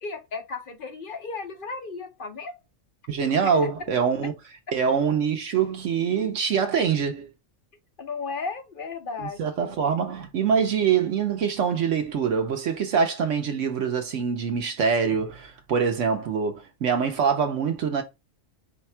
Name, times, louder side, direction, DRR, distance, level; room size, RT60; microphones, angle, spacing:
voice 1, 0.0-2.6 3.4-3.6 8.0-9.7, left 4 dB, 50° left, 0.8 m, -35 dB
voice 2, 3.1-4.3 4.7-7.3 9.4-18.0, right 6 dB, 70° right, 1.1 m, -24 dB
4.9 x 2.3 x 4.2 m
omnidirectional pair, 1.3 m